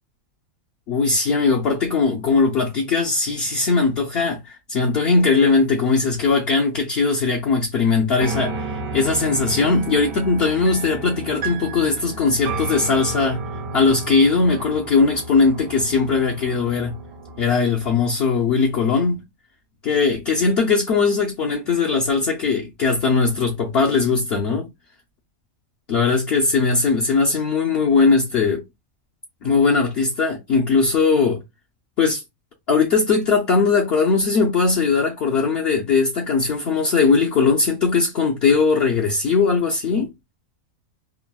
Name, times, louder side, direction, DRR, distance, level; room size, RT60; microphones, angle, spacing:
voice 1, 0.9-8.5 8.9-13.4 13.7-17.0 17.4-19.2 19.8-24.7 25.9-28.6 29.4-31.4 32.0-32.2 32.7-40.1, left 4 dB, 60° left, 0.7 m, -19 dB
sound 1, 8.2-17.4, right 4 dB, 75° right, 1.1 m, -32 dB
3.4 x 2.2 x 2.2 m
omnidirectional pair, 1.5 m